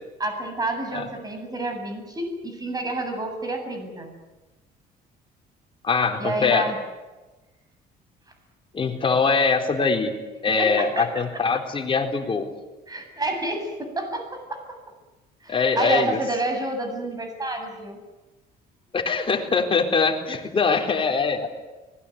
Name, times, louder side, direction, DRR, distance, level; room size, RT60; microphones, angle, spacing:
voice 1, 0.2-4.1 6.2-6.8 10.6-11.0 12.9-14.6 15.4-18.0, right 2 dB, 20° right, 5 dB, 8.0 m, -29 dB
voice 2, 5.8-6.7 8.7-10.2 10.4-12.5 15.5-16.2 18.9-21.5, left 4 dB, 30° left, 4 dB, 4.1 m, -22 dB
25.5 x 21.0 x 9.6 m, 1.1 s
cardioid pair, 110°, 17 cm